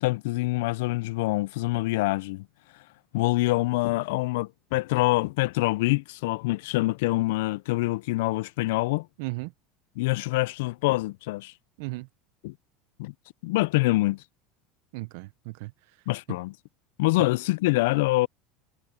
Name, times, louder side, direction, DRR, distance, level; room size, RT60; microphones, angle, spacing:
voice 1, 0.0-2.5 3.1-9.1 10.0-11.5 12.4-12.5 13.0-13.1 13.4-14.2 16.1-16.5 17.0-18.3, left 21 dB, 80° left, 0.3 m, -25 dB
voice 2, 9.2-9.5 11.8-12.1 14.9-16.4, right 22 dB, 75° right, 0.6 m, -37 dB
supercardioid pair, 110°, 0 cm